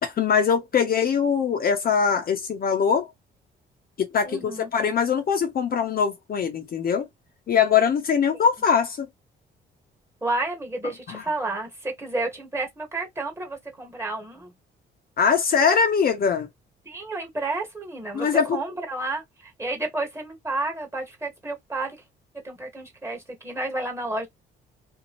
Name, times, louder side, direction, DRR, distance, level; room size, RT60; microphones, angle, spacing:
voice 1, 0.0-3.1 4.0-7.1 7.5-9.1 11.1-11.2 15.2-16.5 18.1-18.6, left 6 dB, 50° left, 0.7 m, -22 dB
voice 2, 4.2-4.7 8.3-8.4 10.2-14.5 16.8-22.0 22.4-24.3, right 2 dB, 15° right, 1.4 m, -31 dB
2.6 x 2.2 x 2.9 m
cardioid pair, 90°, 20 cm